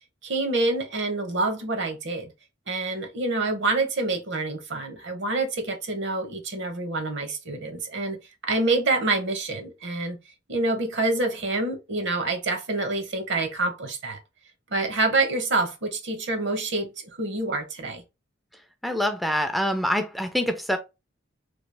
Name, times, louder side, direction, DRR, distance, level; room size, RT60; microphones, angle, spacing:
voice 1, 0.2-2.3 2.7-8.2 8.5-10.2 10.5-14.2 14.7-16.9 17.2-18.0, right 2 dB, 65° right, 0.9 m, -27 dB
voice 2, 18.8-20.8, equal, ahead, 0.3 m, -25 dB
3.1 x 2.7 x 3.2 m
head